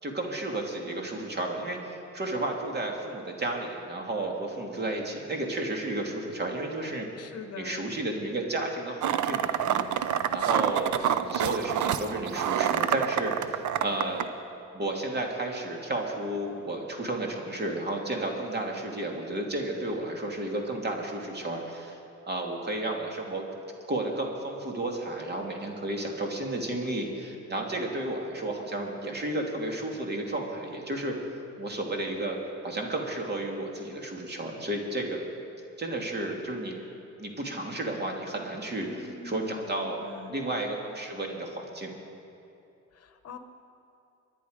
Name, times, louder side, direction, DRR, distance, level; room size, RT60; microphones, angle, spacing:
voice 1, 0.0-1.8 2.1-7.1 7.5-14.3 14.7-22.0 22.2-23.4 23.9-31.1 31.6-32.4 32.6-35.2 35.8-36.8 37.2-41.9, right 2 dB, 35° right, 1 dB, 2.6 m, -32 dB
voice 2, 7.2-7.9 38.8-40.4 42.9-43.4, left 5 dB, 55° left, 8 dB, 1.1 m, -43 dB
sound 1, 9.0-14.2, right 10 dB, 70° right, 0.7 m, -27 dB
24.0 x 10.0 x 5.1 m, 2.8 s
cardioid pair, 90°, 30 cm